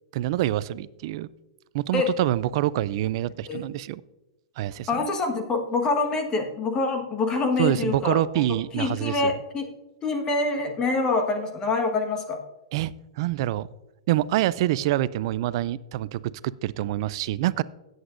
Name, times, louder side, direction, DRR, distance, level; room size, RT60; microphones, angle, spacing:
voice 1, 0.1-1.3 1.7-4.0 4.6-4.9 7.6-9.3 12.7-13.7 14.1-17.6, right 14 dB, 50° right, 18 dB, 0.4 m, -26 dB
voice 2, 4.9-8.2 8.8-9.7 10.0-12.4, left 3 dB, 20° left, 4 dB, 1.4 m, -25 dB
16.5 x 7.9 x 2.5 m, 1.0 s
hypercardioid pair, 145°, 3 cm